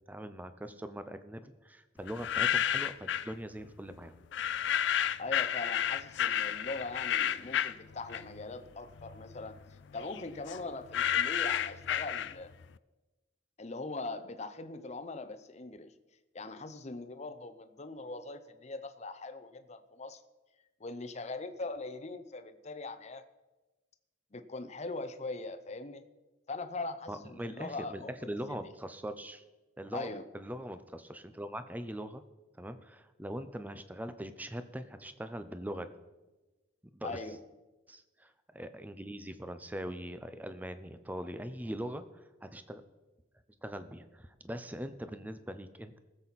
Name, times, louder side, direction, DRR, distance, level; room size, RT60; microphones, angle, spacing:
voice 1, 0.1-4.2 27.1-29.4 29.8-32.2 32.6-35.9 36.9-37.2 37.9-42.8 43.6-46.0, equal, 10° right, 10 dB, 0.6 m, -41 dB
sound 1, 2.1-3.3 4.3-8.5 8.9-12.6, left 9 dB, 65° left, 0.4 m, -31 dB
voice 2, 5.2-9.6 9.9-12.5 13.6-15.9 16.3-20.2 20.8-23.2 24.3-26.0 26.5-28.6 29.9-30.2 37.0-37.4, left 3 dB, 35° left, 9 dB, 0.7 m, -41 dB
19.5 x 7.7 x 4.1 m, 1.1 s
head